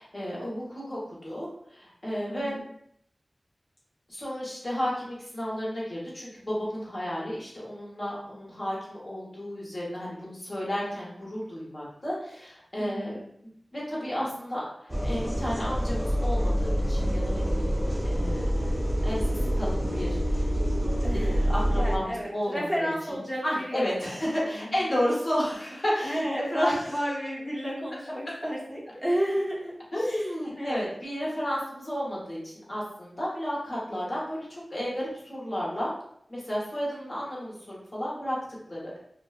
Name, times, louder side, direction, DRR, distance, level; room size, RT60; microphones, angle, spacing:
voice 1, 0.0-2.6 4.1-13.2 13.7-18.7 19.0-20.8 21.1-26.8 29.9-35.9 36.3-38.4 38.7-39.0, equal, 45° left, -6 dB, 1.0 m, -32 dB
voice 2, 2.3-2.6 12.8-13.2 21.0-24.8 26.0-29.8 30.0-30.9, equal, 15° left, -6 dB, 0.8 m, -32 dB
sound 1, 14.9-22.0, equal, 5° right, 0.4 m, -26 dB
2.5 x 2.1 x 2.4 m, 0.70 s
wide cardioid pair, 75°, 0 cm